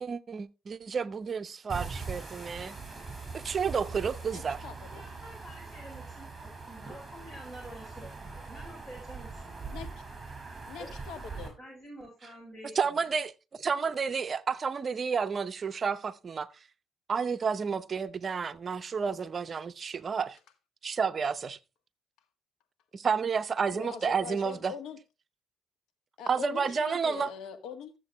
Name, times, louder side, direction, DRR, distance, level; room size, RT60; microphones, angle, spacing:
voice 1, 0.0-2.8 3.3-4.6 12.7-16.5 17.1-20.4 20.8-21.6 22.9-24.7 26.3-27.3, right 6 dB, 45° right, 0.7 m, -31 dB
sound 1, 1.7-11.5, right 4 dB, 20° right, 5.9 m, -42 dB
voice 2, 4.3-4.8 9.7-9.9 10.7-11.6 23.7-25.0 26.2-27.9, left 7 dB, 85° left, 1.7 m, -42 dB
voice 3, 4.9-6.2 6.7-9.8 10.8-10.9 11.6-13.0, right 1 dB, 25° left, 7.2 m, -48 dB
13.5 x 7.5 x 3.0 m
cardioid pair, 90°, 0 cm